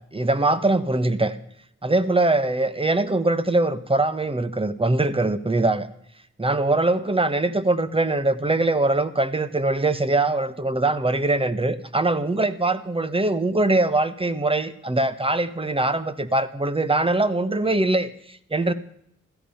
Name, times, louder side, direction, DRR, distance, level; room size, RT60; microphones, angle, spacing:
voice 1, 0.1-1.4 1.8-5.9 6.4-18.7, right 2 dB, 20° right, 12 dB, 1.4 m, -22 dB
16.0 x 14.0 x 5.7 m, 0.70 s
cardioid pair, 65°, 29 cm